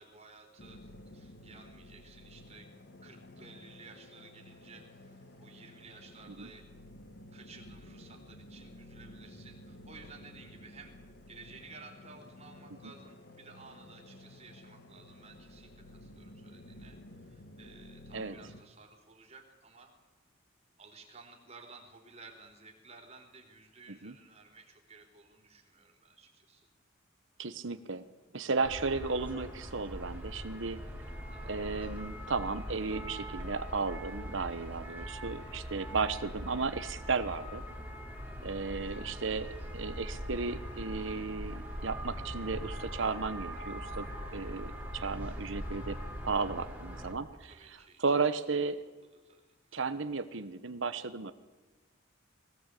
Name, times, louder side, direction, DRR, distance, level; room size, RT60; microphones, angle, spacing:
voice 1, 0.0-2.7 3.0-6.7 7.3-10.9 11.3-19.9 20.8-26.7 31.0-31.8 34.9-35.1 38.6-39.1 39.6-39.7 44.5-44.6 47.4-48.2 48.5-48.6 49.1-49.4 49.7-49.8, right 4 dB, 30° right, 3 dB, 4.0 m, -55 dB
sound 1, 0.6-18.6, left 1 dB, 55° left, 1.6 m, -52 dB
voice 2, 27.4-28.0 28.3-30.8 31.5-37.6 38.4-44.1 44.3-46.0 46.2-48.8 49.7-51.3, right 4 dB, 70° right, 11 dB, 1.1 m, -34 dB
sound 2, 28.6-47.1, equal, 10° right, 3.4 m, -41 dB
21.5 x 18.0 x 8.4 m, 1.2 s
head